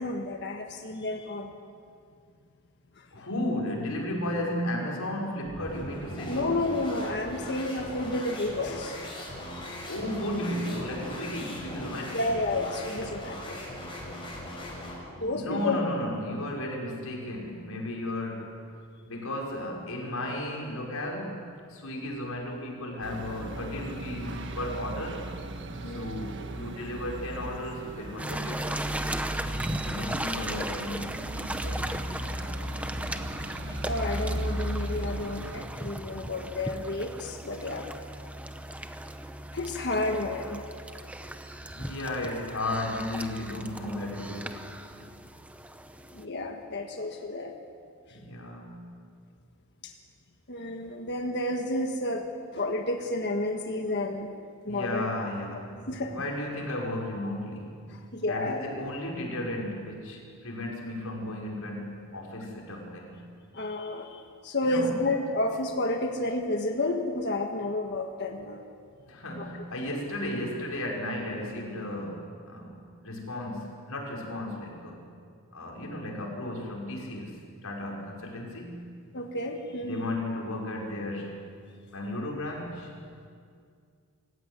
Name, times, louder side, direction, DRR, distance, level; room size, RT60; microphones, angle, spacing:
voice 1, 0.0-1.5 3.0-3.3 6.3-9.0 9.5-9.7 12.1-13.6 15.2-15.8 25.8-26.1 33.8-37.9 39.5-40.6 46.1-47.5 49.8-49.9 50.5-54.3 54.6-55.1 55.9-56.2 57.9-58.6 63.5-68.6 69.4-69.5 79.1-80.1, left 2 dB, 50° left, 3 dB, 1.6 m, -31 dB
voice 2, 3.1-6.7 9.9-12.2 15.2-18.6 19.1-25.3 25.9-29.0 29.3-29.5 29.8-32.4 41.7-45.2 48.1-48.9 54.7-57.7 58.3-63.2 64.6-64.9 69.1-75.1 75.5-78.8 79.8-81.4 81.9-82.9, left 1 dB, 75° left, -1 dB, 5.6 m, -34 dB
sound 1, 5.4-15.1, left 1 dB, 20° left, 6.3 m, -40 dB
sound 2, 23.0-35.6, right 1 dB, 55° right, 1.6 m, -36 dB
Waves Lapping, 28.2-46.3, right 1 dB, 5° right, 0.8 m, -37 dB
26.0 x 15.0 x 9.7 m, 2.3 s
head